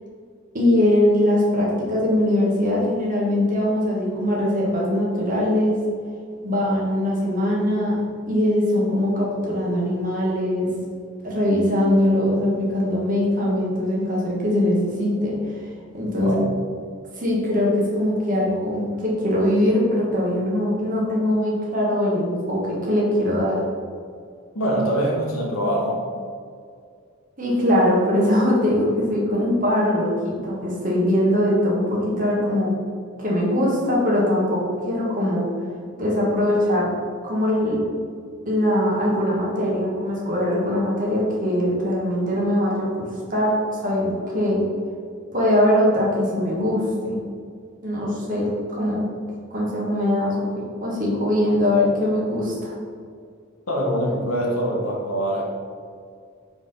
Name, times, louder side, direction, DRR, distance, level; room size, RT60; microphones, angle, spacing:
voice 1, 0.5-5.7 6.4-8.0 8.3-10.7 11.2-15.4 15.9-16.4 17.2-23.6 27.4-32.7 33.2-35.4 36.0-36.9 37.2-37.8 38.4-43.0 43.3-44.6 45.3-47.2 47.8-49.0 49.5-52.7, left 1 dB, 40° right, -4 dB, 1.6 m, -21 dB
voice 2, 24.5-26.1 53.7-55.4, equal, 85° left, -2 dB, 1.5 m, -23 dB
4.8 x 4.1 x 5.5 m, 2.2 s
head